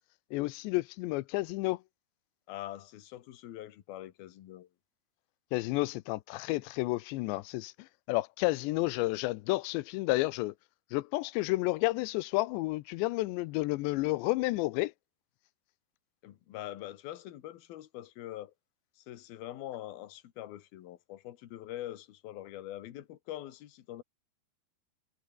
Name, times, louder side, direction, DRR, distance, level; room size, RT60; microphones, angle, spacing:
voice 1, 0.3-1.8 5.5-7.7 8.1-10.5 10.9-14.9, left 20 dB, 90° left, 3.0 m, -31 dB
voice 2, 2.5-4.7 16.2-18.5 19.0-24.0, left 14 dB, 65° left, 3.3 m, -44 dB
omnidirectional pair, 5.0 m